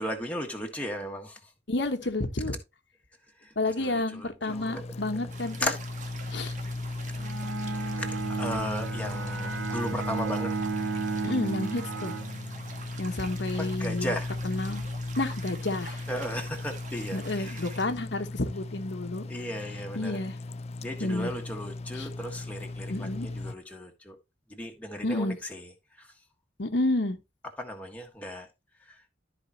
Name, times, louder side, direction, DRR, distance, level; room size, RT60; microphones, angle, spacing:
voice 1, 0.0-1.5 3.4-5.2 5.6-5.8 8.0-10.5 13.6-14.3 16.1-17.8 19.3-20.2 20.8-24.2 24.5-26.2 27.6-28.5 28.8-29.0, equal, 10° left, 1.5 m, -36 dB
voice 2, 1.7-2.6 3.6-5.7 6.3-6.5 11.2-12.1 13.0-14.1 14.4-14.8 15.2-16.0 17.1-19.3 19.9-20.3 21.0-21.3 22.0-22.1 22.9-23.3 25.0-25.4 26.6-27.2, left 2 dB, 70° left, 1.2 m, -30 dB
sound 1, 4.5-23.6, left 2 dB, 35° left, 0.4 m, -37 dB
sound 2, 5.3-17.9, right 5 dB, 45° right, 1.4 m, -46 dB
Bowed string instrument, 7.2-13.0, right 4 dB, 80° right, 0.7 m, -33 dB
13.5 x 4.9 x 2.9 m
head